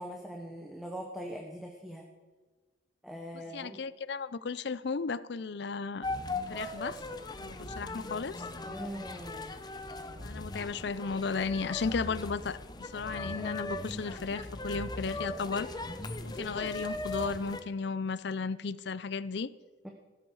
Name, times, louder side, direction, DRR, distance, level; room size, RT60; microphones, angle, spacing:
voice 1, 0.0-2.0 3.0-3.8 8.6-9.5 19.8-19.9, equal, ahead, 1 dB, 1.1 m, -42 dB
voice 2, 3.5-6.1 6.5-7.0 7.4-8.3 10.2-15.7 16.2-19.5, left 4 dB, 60° left, 17 dB, 0.5 m, -34 dB
sound 1, 6.0-17.6, left 2 dB, 20° left, 0.7 m, -39 dB
15.0 x 13.0 x 4.8 m, 1.3 s
head